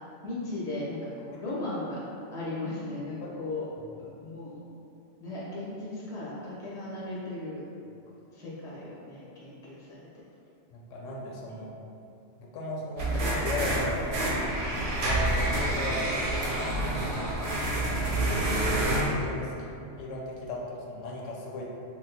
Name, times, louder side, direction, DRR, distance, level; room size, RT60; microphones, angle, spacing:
voice 1, 0.2-2.0 2.3-3.7 4.0-4.6 5.2-7.6 8.3-10.0 11.5-11.6 18.2-18.7, left 2 dB, 5° left, -8 dB, 0.4 m, -37 dB
voice 2, 10.7-11.7 12.4-18.3 18.9-21.6, left 1 dB, 80° left, -2 dB, 0.9 m, -37 dB
sound 1, 13.0-19.1, right 1 dB, 55° right, 0.6 m, -28 dB
2.8 x 2.1 x 4.0 m, 2.6 s
omnidirectional pair, 1.3 m